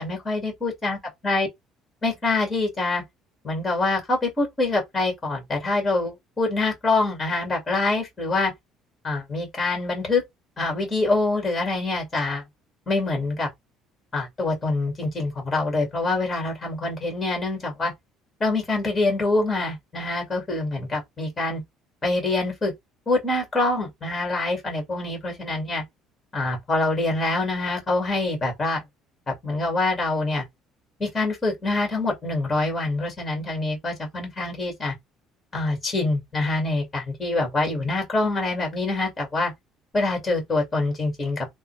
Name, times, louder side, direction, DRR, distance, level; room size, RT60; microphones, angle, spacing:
voice 1, 0.0-1.5 2.0-3.0 3.4-8.5 9.0-10.2 10.6-12.4 12.9-13.5 14.1-17.9 18.4-21.6 22.0-22.7 23.1-25.8 26.3-28.8 29.3-30.4 31.0-34.9 35.5-39.5 39.9-41.5, left 2 dB, 20° left, 1.9 m, -25 dB
3.5 x 2.2 x 3.1 m
cardioid pair, 150°, 0 cm